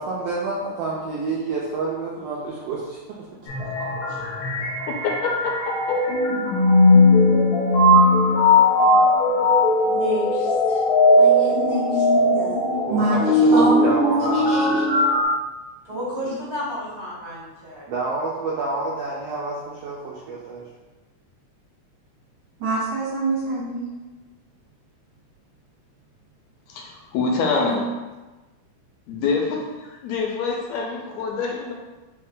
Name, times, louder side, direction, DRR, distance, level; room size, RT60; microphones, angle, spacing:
voice 1, 0.0-3.3 12.9-14.8 17.9-20.6, right 3 dB, 80° right, -4 dB, 1.5 m, -28 dB
sound 1, 3.5-15.2, left 2 dB, 65° left, 1.2 m, -18 dB
voice 2, 4.9-6.0 13.3-13.5 26.7-27.8 29.1-31.7, left 4 dB, 80° left, 0 dB, 1.9 m, -26 dB
voice 3, 9.8-10.8 11.1-12.8 15.8-17.9, equal, 35° right, -10 dB, 1.2 m, -33 dB
voice 4, 13.5-15.0 16.2-16.3 22.6-23.9 27.6-27.8, right 2 dB, 55° right, -8 dB, 1.7 m, -24 dB
4.3 x 3.2 x 3.7 m, 1.2 s
omnidirectional pair, 3.4 m